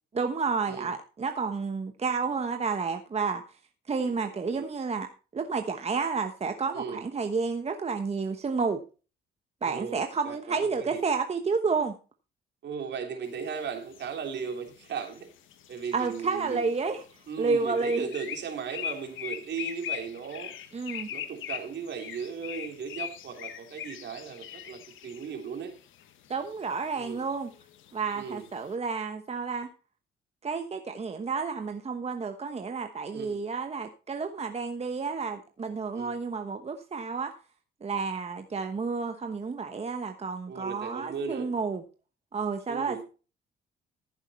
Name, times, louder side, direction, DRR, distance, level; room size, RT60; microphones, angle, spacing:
voice 1, 0.1-3.4 3.9-5.1 5.3-8.8 9.6-11.9 15.9-17.0 17.4-18.0 20.7-21.1 26.3-27.5 27.9-29.7 30.4-37.3 37.8-41.8 42.3-43.0, right 4 dB, 30° right, 6 dB, 1.2 m, -30 dB
voice 2, 4.0-4.7 6.7-7.0 9.6-11.0 12.6-15.3 15.7-16.7 17.3-20.5 21.1-25.7 26.9-27.2 28.1-28.5 33.1-33.4 35.9-36.1 40.5-41.5 42.7-43.0, right 6 dB, 65° right, 4 dB, 3.2 m, -37 dB
sound 1, 13.2-28.7, left 10 dB, 80° left, 1.4 m, -42 dB
14.0 x 7.5 x 4.3 m, 0.34 s
cardioid pair, 90°, 20 cm